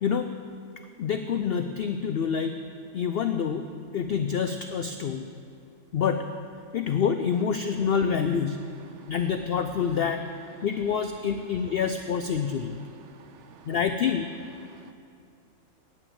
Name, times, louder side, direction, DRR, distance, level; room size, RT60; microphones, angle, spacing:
voice 1, 1.0-2.5 2.9-3.6 3.9-5.3 5.9-6.2 6.7-8.6 9.1-10.2 10.6-12.8 13.7-14.3, left 7 dB, 75° left, 7 dB, 0.5 m, -27 dB
voice 2, 13.1-13.7 14.7-14.9, right 7 dB, 65° right, 8 dB, 0.8 m, -53 dB
9.1 x 9.1 x 7.9 m, 2.3 s
omnidirectional pair, 1.6 m